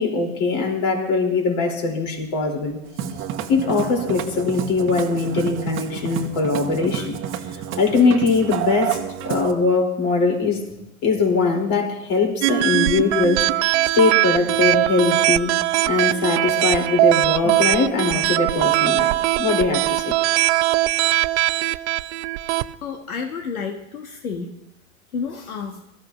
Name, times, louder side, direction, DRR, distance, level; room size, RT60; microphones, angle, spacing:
voice 1, 0.0-2.8 3.5-7.2 7.8-10.7 11.0-13.7 13.9-15.5 15.9-20.1, left 4 dB, 50° left, 0 dB, 4.7 m, -21 dB
Musical instrument, 2.9-9.5, right 9 dB, 30° right, 1.2 m, -29 dB
sound 1, 12.4-22.7, right 17 dB, 55° right, 0.6 m, -20 dB
voice 2, 22.8-24.5 25.1-25.9, left 5 dB, 85° left, 4 dB, 1.4 m, -30 dB
22.5 x 14.0 x 3.1 m, 0.89 s
hypercardioid pair, 110°, 42 cm